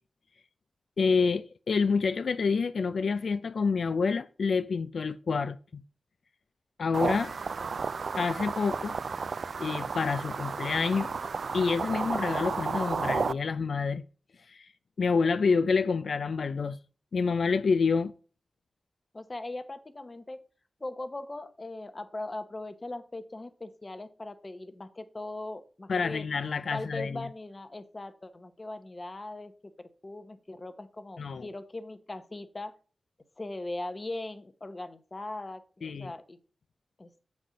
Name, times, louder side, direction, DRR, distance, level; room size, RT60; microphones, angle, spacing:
voice 1, 1.0-5.8 6.8-7.3 8.2-9.0 9.6-11.1 11.5-14.0 14.5-14.7 15.0-16.8 17.1-18.1 25.9-27.2 31.2-31.5 35.8-36.1, left 5 dB, 75° left, 0.3 m, -28 dB
sound 1, 6.9-13.3, right 5 dB, 70° right, 0.3 m, -32 dB
voice 2, 19.1-20.4 20.8-26.3 26.7-32.7 33.4-36.4 37.0-37.1, left 2 dB, 30° left, 0.8 m, -40 dB
7.9 x 4.2 x 6.1 m
wide cardioid pair, 100°, 0 cm